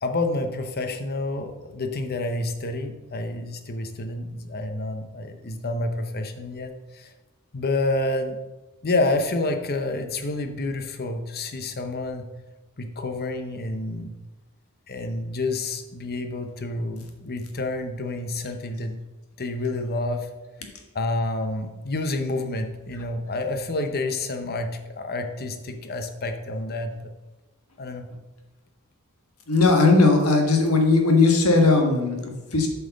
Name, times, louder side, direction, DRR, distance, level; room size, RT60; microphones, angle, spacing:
voice 1, 0.0-7.1 7.5-8.4 8.8-12.3 12.8-14.1 14.9-19.0 19.4-20.3 20.9-27.1 27.8-28.1, left 2 dB, 45° left, 6 dB, 0.9 m, -29 dB
voice 2, 29.5-32.7, left 3 dB, 80° left, 3 dB, 1.5 m, -18 dB
7.7 x 5.6 x 5.3 m, 1.1 s
head